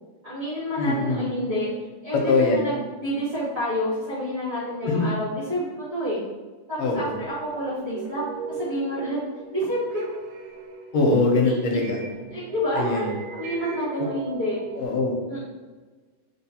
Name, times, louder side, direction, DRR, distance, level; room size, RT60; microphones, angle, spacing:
voice 1, 0.2-1.7 2.0-6.2 6.7-9.2 9.5-10.0 11.4-11.8 12.3-14.6 15.3-15.4, equal, 65° right, -12 dB, 0.6 m, -29 dB
voice 2, 0.8-1.3 2.1-2.7 4.8-5.1 6.8-7.2 10.9-12.0 12.7-13.1 14.0-14.1 14.8-15.1, left 3 dB, 75° left, 0 dB, 1.5 m, -22 dB
sound 1, 6.9-14.9, right 5 dB, 90° right, 2.0 m, -39 dB
4.7 x 2.0 x 4.1 m, 1.3 s
omnidirectional pair, 3.4 m